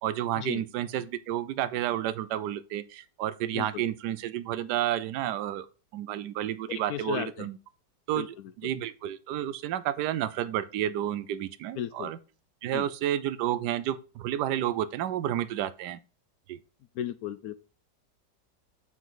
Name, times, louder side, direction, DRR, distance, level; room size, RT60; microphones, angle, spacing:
voice 1, 0.0-5.7 5.9-7.6 8.1-12.2 12.6-16.0 16.5-16.6, right 12 dB, 75° right, 1.2 m, -31 dB
voice 2, 6.7-7.5 8.2-8.3 11.8-12.1 12.7-12.9 17.0-17.6, left 11 dB, 70° left, 0.9 m, -35 dB
7.9 x 4.7 x 3.9 m
omnidirectional pair, 1.9 m